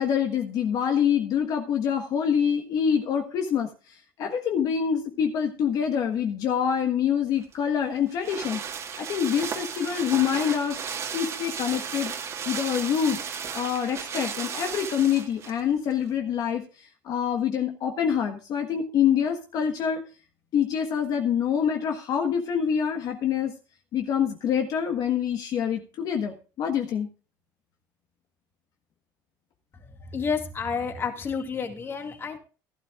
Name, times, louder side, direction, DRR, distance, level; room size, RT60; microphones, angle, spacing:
voice 1, 0.0-3.7 4.2-8.6 9.0-10.8 11.1-12.1 12.4-13.2 13.5-20.0 20.5-23.5 23.9-27.1, left 8 dB, 55° left, 4 dB, 1.5 m, -26 dB
sound 1, 7.4-15.6 15.9-16.0, right 7 dB, 40° right, 1.9 m, -34 dB
voice 2, 30.1-32.4, left 6 dB, 30° left, 5 dB, 2.0 m, -30 dB
16.0 x 12.0 x 2.5 m, 0.33 s
cardioid pair, 125°, 8 cm